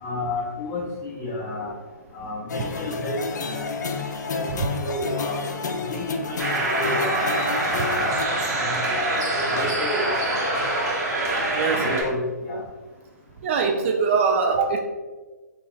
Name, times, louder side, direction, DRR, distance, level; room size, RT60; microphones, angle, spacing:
voice 1, 0.0-1.7 2.1-3.7 4.3-5.4 5.8-7.3 7.8-8.1 8.4-10.8 11.6-12.6, left 1 dB, 25° left, -5 dB, 0.6 m, -31 dB
sound 1, 2.5-8.3, left 4 dB, 75° left, 0.5 m, -30 dB
sound 2, 6.4-12.0, right 2 dB, 60° right, 1.4 m, -25 dB
voice 2, 11.5-12.0 13.4-14.8, right 5 dB, 40° right, 4 dB, 0.3 m, -22 dB
2.9 x 2.9 x 3.8 m, 1.3 s
hypercardioid pair, 130°, 10 cm